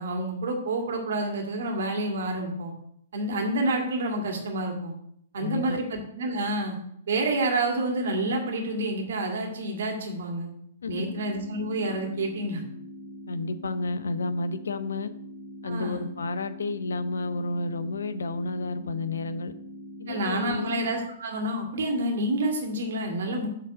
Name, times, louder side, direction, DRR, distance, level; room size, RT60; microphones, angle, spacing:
voice 1, 0.0-2.7 3.1-4.9 5.3-6.8 7.1-10.5 10.9-12.6 15.6-16.1 20.1-23.5, right 1 dB, 65° right, 2 dB, 2.0 m, -28 dB
voice 2, 5.3-5.8 10.8-11.1 13.3-15.1 15.6-19.5 20.0-20.7, left 3 dB, 75° left, 13 dB, 0.6 m, -31 dB
sound 1, 10.9-20.9, equal, 20° left, 2.1 m, -43 dB
7.3 x 3.9 x 6.6 m, 0.71 s
figure-of-eight pair, 115°, 0 cm